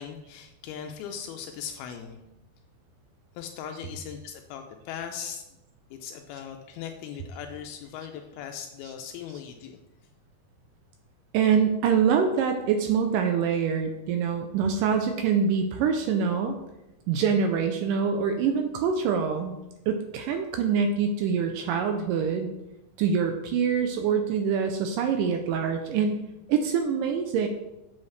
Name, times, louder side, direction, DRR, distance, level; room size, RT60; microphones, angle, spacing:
voice 1, 0.0-2.2 3.4-5.4 5.9-9.8, left 8 dB, 85° left, 4 dB, 2.4 m, -39 dB
voice 2, 11.3-16.6 17.1-19.5 19.9-22.5 23.0-26.2 26.5-27.5, right 6 dB, 80° right, 5 dB, 1.9 m, -25 dB
7.5 x 7.2 x 3.2 m, 0.93 s
omnidirectional pair, 4.3 m